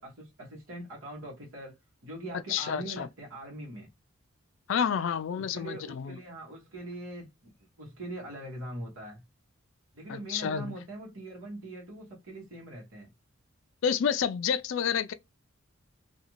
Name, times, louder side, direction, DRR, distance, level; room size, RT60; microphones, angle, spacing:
voice 1, 0.0-1.7 2.0-3.9 5.3-7.5 7.8-9.2 9.9-13.1, right 1 dB, 70° right, 1.1 m, -42 dB
voice 2, 2.5-3.1 4.7-6.2 10.1-10.7 13.8-15.1, left 7 dB, 65° left, 0.3 m, -29 dB
2.5 x 2.4 x 2.9 m
head